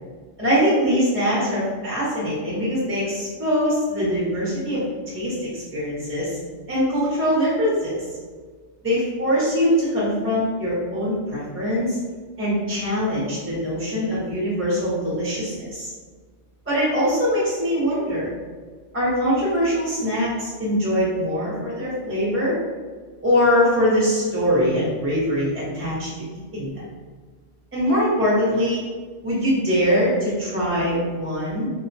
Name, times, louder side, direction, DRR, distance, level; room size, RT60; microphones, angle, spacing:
voice 1, 0.4-6.4 6.7-8.0 8.8-12.0 12.4-15.9 16.7-18.3 18.9-22.6 23.2-26.1 26.5-26.8 27.7-28.8 29.2-31.7, equal, 15° right, -8 dB, 0.5 m, -22 dB
2.6 x 2.1 x 2.6 m, 1.5 s
omnidirectional pair, 1.1 m